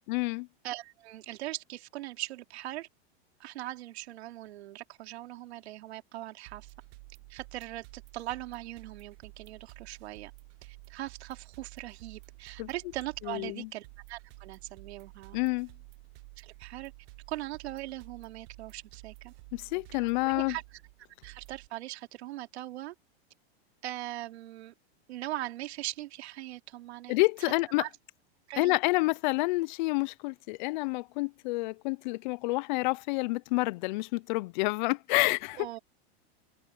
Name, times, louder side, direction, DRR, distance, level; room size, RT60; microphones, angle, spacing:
voice 1, 0.1-0.5 12.6-12.7 13.2-13.7 15.3-15.7 19.5-20.6 27.1-27.8 28.6-35.7, left 23 dB, 45° left, 0.5 m, -29 dB
voice 2, 0.6-2.9 3.4-6.7 7.3-10.3 10.6-15.4 16.4-16.9 17.3-19.3 19.9-20.6 21.2-22.9 23.8-24.7 25.1-27.2 27.8-27.9 28.5-28.8 35.6-35.8, right 15 dB, 75° right, 3.1 m, -40 dB
sound 1, 6.5-21.7, right 22 dB, 45° right, 1.1 m, -52 dB
open air
supercardioid pair, 150°, 33 cm